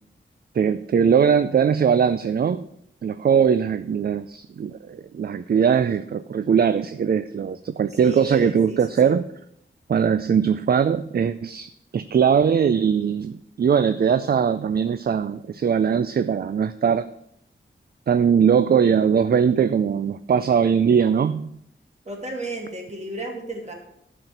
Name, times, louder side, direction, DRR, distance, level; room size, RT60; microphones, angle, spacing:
voice 1, 0.6-2.7 3.0-9.2 9.9-17.1 18.1-21.5, right 7 dB, 50° right, 13 dB, 0.4 m, -20 dB
voice 2, 7.9-9.2 22.1-23.7, right 1 dB, 35° right, 1 dB, 2.5 m, -34 dB
10.5 x 4.3 x 7.9 m, 0.73 s
wide cardioid pair, 100°, 21 cm